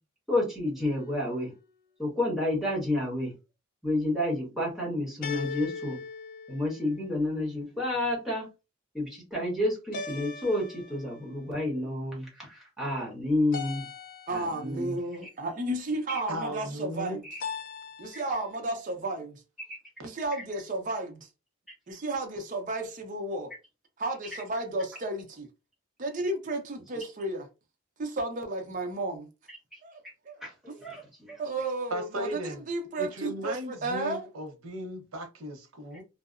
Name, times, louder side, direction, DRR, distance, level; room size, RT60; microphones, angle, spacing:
voice 1, 0.3-1.5 2.0-3.3 3.8-6.0 6.5-8.5 8.9-13.9 14.3-15.0 15.2-15.3 16.1-16.2 17.3-17.4 18.1-18.2 19.7-19.8 24.3-24.4 30.4-31.4, left 1 dB, ahead, 1.0 m, -30 dB
sound 1, 0.8-1.5 5.2-7.2 9.9-11.3 13.5-14.7 17.4-18.4, left 5 dB, 40° left, 0.4 m, -40 dB
voice 2, 14.3-17.2 18.0-19.4 20.0-21.3 21.9-23.5 24.0-25.5 26.0-27.5 28.0-29.3 29.8-30.0 30.3-30.4 30.7-30.8 31.4-34.3, right 2 dB, 40° right, 0.5 m, -33 dB
voice 3, 16.3-17.2 20.0-20.1 31.9-32.6 33.0-36.0, equal, 90° right, 0.7 m, -36 dB
2.7 x 2.0 x 2.4 m
head